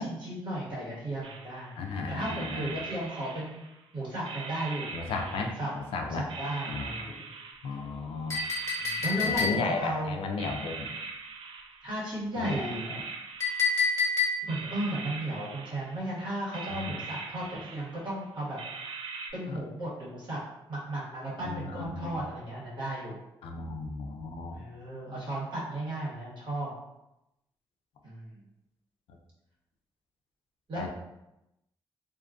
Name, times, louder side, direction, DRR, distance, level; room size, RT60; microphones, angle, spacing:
voice 1, 0.0-1.7 2.1-3.6 3.9-4.9 5.1-5.7 6.0-7.3 8.8-10.1 11.8-12.9 14.4-18.6 19.3-20.4 20.7-23.2 24.5-26.7 28.0-28.4 30.7-30.9, right 1 dB, 55° right, -7 dB, 1.5 m, -35 dB
sound 1, 1.2-1.8 2.2-3.8 4.2-5.9 6.3-7.9 8.3-10.0 10.4-12.1 12.4-14.1 14.5-16.1 16.5-18.1 18.6-19.3, right 5 dB, 70° right, 0.4 m, -42 dB
voice 2, 1.8-2.7 4.9-6.3 6.7-7.1 7.6-8.4 9.2-10.9 12.4-13.0 16.7-17.0 19.5-19.6 21.4-22.1 23.4-24.6 29.1-29.2 30.7-30.9, left 3 dB, 85° left, 3 dB, 0.4 m, -35 dB
Chink clink, 8.3-9.9 13.4-14.7, left 4 dB, 30° left, 1.1 m, -28 dB
2.7 x 2.4 x 2.3 m, 0.90 s
cardioid pair, 80°, 9 cm